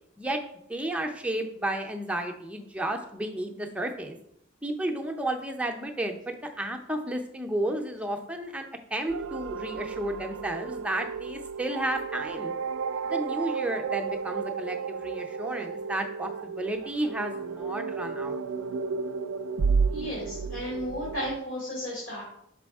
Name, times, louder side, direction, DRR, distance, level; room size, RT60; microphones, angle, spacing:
voice 1, 0.7-4.2 4.6-12.5 13.1-18.4, right 1 dB, 5° right, 2 dB, 0.6 m, -32 dB
sound 1, 9.1-21.4, right 5 dB, 70° right, 0.3 m, -32 dB
voice 2, 19.9-22.2, equal, 80° left, -6 dB, 2.6 m, -34 dB
6.1 x 5.1 x 3.5 m, 0.73 s
head